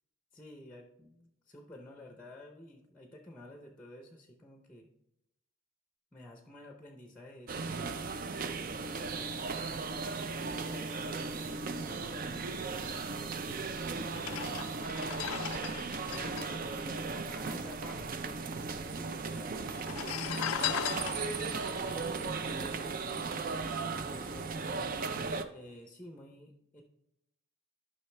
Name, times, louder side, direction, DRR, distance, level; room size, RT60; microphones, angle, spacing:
voice 1, 0.3-4.9 6.1-10.0 10.3-14.6 16.0-23.0 24.0-26.8, left 1 dB, 5° left, 3 dB, 0.6 m, -52 dB
sound 1, 7.5-25.4, right 4 dB, 40° right, 0.5 m, -36 dB
sound 2, 14.1-17.8 18.0-18.1 18.3-19.0 19.7-23.2 23.6-23.8, left 11 dB, 90° left, 0.3 m, -39 dB
11.5 x 5.6 x 3.3 m, 0.85 s
head